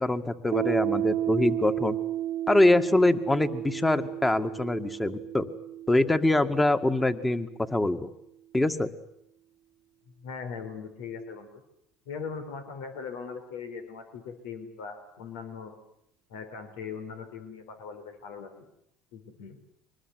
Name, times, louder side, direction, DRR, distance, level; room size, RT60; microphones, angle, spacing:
voice 1, 0.0-2.0 2.5-5.5 5.9-8.1 8.5-8.9, left 2 dB, 15° left, 9 dB, 2.2 m, -24 dB
Piano, 0.5-7.8, right 13 dB, 80° right, 1.0 m, -33 dB
voice 2, 10.2-11.6 12.1-15.8 16.3-18.7 19.1-19.6, left 5 dB, 85° left, 7 dB, 4.5 m, -40 dB
25.0 x 20.5 x 9.7 m, 0.72 s
supercardioid pair, 95°, 0 cm